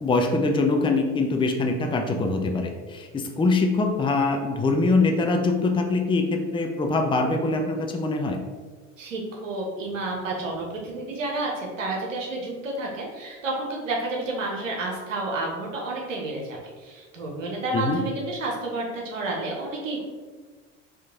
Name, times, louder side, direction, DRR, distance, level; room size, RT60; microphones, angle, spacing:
voice 1, 0.0-8.4 17.7-18.0, left 3 dB, 15° left, 3 dB, 0.5 m, -23 dB
voice 2, 9.0-20.0, right 2 dB, 90° right, -1 dB, 1.0 m, -30 dB
4.6 x 3.0 x 3.7 m, 1.4 s
hypercardioid pair, 70°, 37 cm